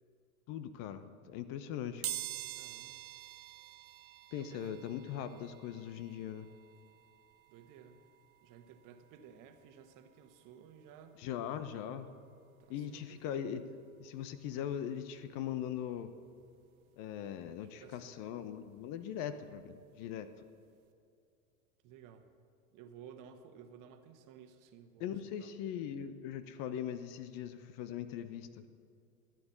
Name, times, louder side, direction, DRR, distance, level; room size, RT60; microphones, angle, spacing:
voice 1, 0.5-2.0 4.3-6.5 11.2-12.1 12.7-13.6 14.0-16.1 17.0-20.3 25.0-28.6, left 9 dB, 45° left, 11 dB, 1.0 m, -40 dB
sound 1, 2.0-12.7 13.2-13.3 14.4-14.5 14.8-16.9 17.3-19.9 20.2-20.4 20.7-20.8, right 13 dB, 75° right, 0.9 m, -48 dB
voice 2, 2.5-3.0 4.4-4.8 7.5-8.0 8.4-11.2 12.6-13.4 17.5-18.2 21.8-22.3 22.7-25.5, right 8 dB, 45° right, 7 dB, 1.5 m, -55 dB
14.0 x 9.3 x 8.1 m, 2.5 s
hypercardioid pair, 90°, 43 cm